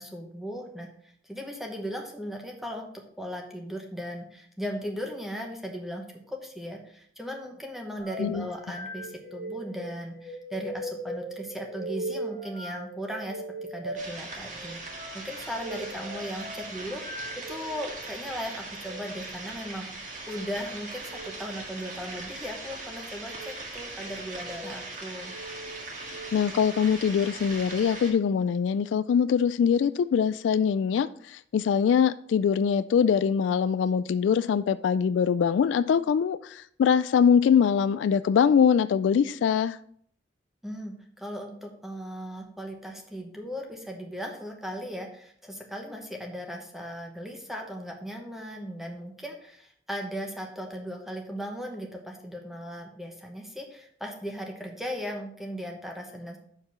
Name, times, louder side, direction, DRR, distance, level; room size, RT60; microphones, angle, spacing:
voice 1, 0.0-2.9 3.2-13.4 13.7-14.8 15.1-25.3 40.6-56.4, equal, ahead, 0.9 m, -37 dB
sound 1, 8.0-17.9 18.7-19.0 21.0-21.3 22.1-22.6 23.2-23.5 24.2-24.7 25.2-26.3, right 1 dB, 80° right, 2.1 m, -39 dB
sound 2, 13.9-28.1, right 2 dB, 45° right, 1.7 m, -40 dB
voice 2, 26.0-39.8, left 7 dB, 90° left, 0.3 m, -23 dB
6.6 x 4.8 x 5.5 m
head